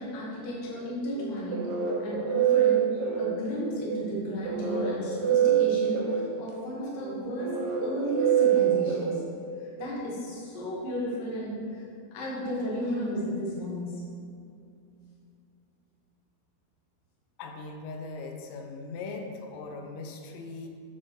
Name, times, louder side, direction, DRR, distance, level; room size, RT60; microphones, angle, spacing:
voice 1, 0.0-1.7 2.0-9.2 9.6-11.8 12.1-13.9, equal, 60° left, -6 dB, 2.8 m, -33 dB
sound 1, 1.1-9.8, right 9 dB, 75° right, 2.2 m, -26 dB
voice 2, 17.4-20.7, left 3 dB, 85° left, 3 dB, 2.9 m, -39 dB
12.0 x 4.6 x 3.1 m, 2.5 s
omnidirectional pair, 5.0 m